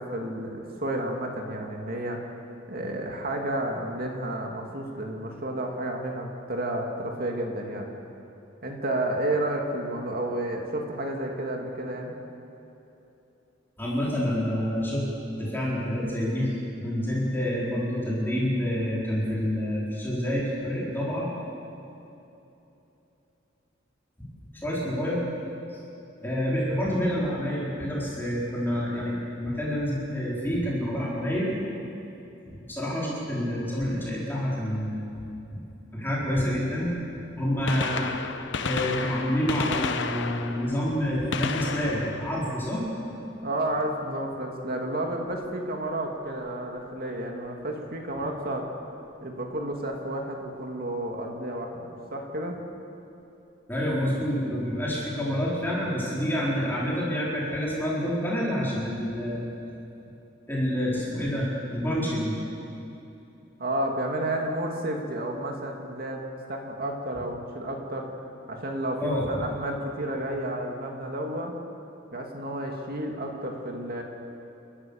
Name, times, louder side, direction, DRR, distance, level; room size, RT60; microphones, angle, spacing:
voice 1, 0.0-2.2 2.7-7.9 8.6-12.2 43.4-48.7 49.2-52.6 63.6-68.1 68.5-71.5 72.1-74.0, right 1 dB, 50° right, 1 dB, 2.3 m, -31 dB
voice 2, 13.8-15.1 15.4-21.3 24.5-25.2 25.7-25.8 26.2-31.5 32.7-35.1 35.9-36.9 37.3-38.1 38.6-42.9 53.7-59.4 60.5-62.4 69.0-69.3, equal, 10° left, -6 dB, 4.4 m, -28 dB
Gunshot gunfire, 37.0-37.1 37.5-43.4 45.3-45.5 46.5-46.6 48.2-48.3 49.7-49.8 49.9-50.0, left 5 dB, 65° left, 0.9 m, -33 dB
29.5 x 13.0 x 7.1 m, 2.9 s
head